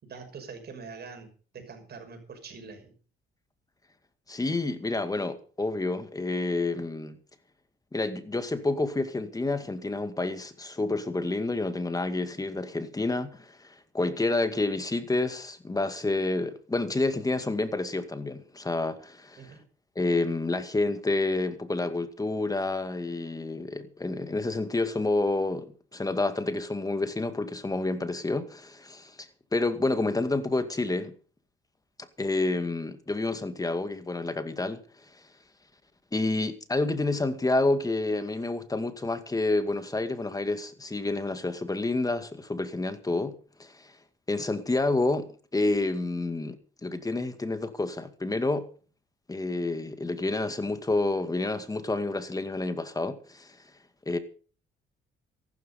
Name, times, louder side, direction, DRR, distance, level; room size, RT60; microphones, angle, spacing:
voice 1, 0.0-2.9 19.4-19.7, right 5 dB, 55° right, 6.0 m, -44 dB
voice 2, 4.3-7.2 7.9-19.4 20.0-31.1 32.2-34.8 36.1-43.9 44.3-48.7 49.3-53.6 54.1-54.2, left 2 dB, 20° left, 2.1 m, -29 dB
14.5 x 12.5 x 5.4 m
cardioid pair, 90°, 20 cm